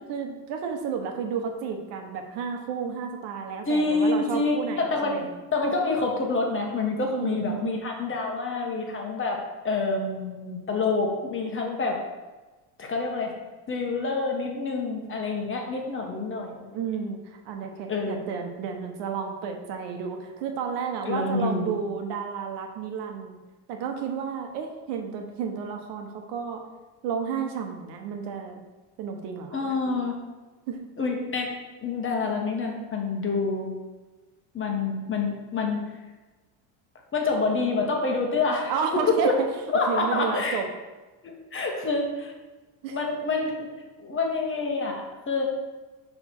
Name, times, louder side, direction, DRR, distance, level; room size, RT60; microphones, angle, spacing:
voice 1, 0.1-5.3 7.1-7.8 16.7-23.4 23.7-26.6 27.0-28.6 29.0-29.5 30.7-30.8 38.7-39.3 39.9-40.7 42.8-43.0, right 6 dB, 70° right, 4 dB, 1.1 m, -32 dB
voice 2, 3.7-12.0 12.8-13.3 13.7-16.8 17.9-18.3 21.0-21.7 29.5-30.2 31.0-31.5 31.8-33.7 34.5-35.8 37.1-39.3 39.7-40.6 41.2-42.3 42.9-43.5 44.0-45.5, left 3 dB, 30° left, 1 dB, 1.3 m, -27 dB
5.8 x 3.4 x 5.9 m, 1.2 s
supercardioid pair, 110°, 44 cm